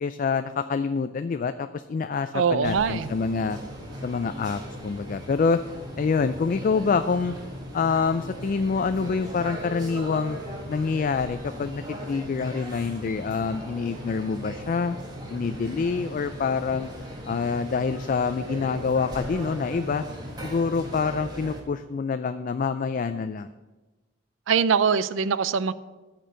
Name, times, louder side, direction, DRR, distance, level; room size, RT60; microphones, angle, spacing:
voice 1, 0.0-3.6 4.0-5.6 6.0-7.4 7.7-10.4 10.7-15.0 15.3-16.9 17.3-20.0 20.4-23.5, left 5 dB, 45° left, 11 dB, 0.3 m, -26 dB
voice 2, 2.3-3.1 24.5-25.7, right 6 dB, 80° right, 16 dB, 0.5 m, -22 dB
sound 1, 2.6-21.6, equal, 20° right, 1.9 m, -38 dB
13.0 x 4.5 x 7.4 m, 1.2 s
head